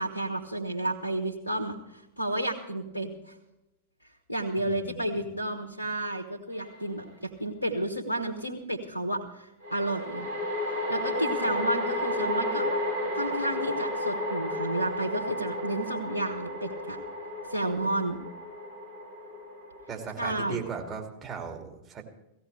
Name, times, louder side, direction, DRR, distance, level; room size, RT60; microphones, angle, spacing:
voice 1, 0.0-3.3 4.3-10.3 10.9-12.7 13.1-17.0 17.5-18.2 20.2-20.6, right 1 dB, 90° left, 3 dB, 1.4 m, -31 dB
voice 2, 4.6-5.3 19.9-22.0, right 6 dB, 30° right, 2 dB, 2.6 m, -38 dB
sound 1, 6.6-6.8 9.6-21.0, left 1 dB, 75° right, 4.1 m, -33 dB
17.5 x 15.5 x 3.4 m, 0.93 s
figure-of-eight pair, 90°, 0 cm